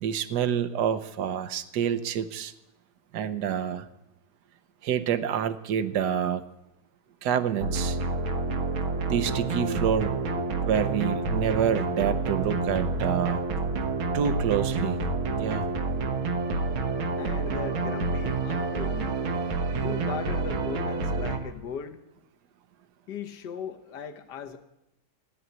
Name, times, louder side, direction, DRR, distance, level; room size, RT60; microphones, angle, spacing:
voice 1, 0.0-2.5 3.1-3.9 4.8-6.4 7.2-8.0 9.1-13.4 14.1-15.0 15.4-15.7, right 8 dB, 65° right, 13 dB, 1.2 m, -27 dB
sound 1, 7.6-21.4, right 3 dB, 80° right, 2.1 m, -28 dB
sound 2, 8.8-17.5, equal, 85° left, 2.5 m, -43 dB
voice 2, 17.1-19.1 19.8-22.0 23.1-24.6, left 7 dB, 60° left, 7 dB, 1.6 m, -38 dB
14.0 x 10.0 x 9.3 m, 0.87 s
omnidirectional pair, 2.2 m